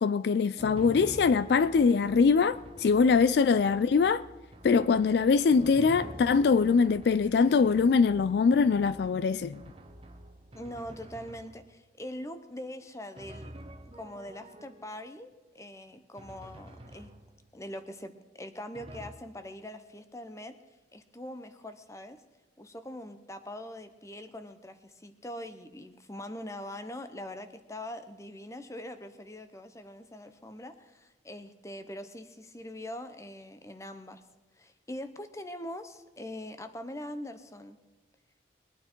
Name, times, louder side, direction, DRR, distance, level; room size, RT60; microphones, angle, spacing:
voice 1, 0.0-4.2 4.6-9.6, left 5 dB, 60° left, 0.3 m, -23 dB
Drum, 0.6-11.9 13.2-15.1 16.2-17.7 18.7-19.1, right 1 dB, 30° right, 1.0 m, -48 dB
voice 2, 10.5-13.5 13.9-17.1 17.5-20.6 20.9-22.2 22.6-34.2 34.5-37.8, left 1 dB, 15° left, 0.8 m, -42 dB
21.5 x 9.1 x 4.5 m
head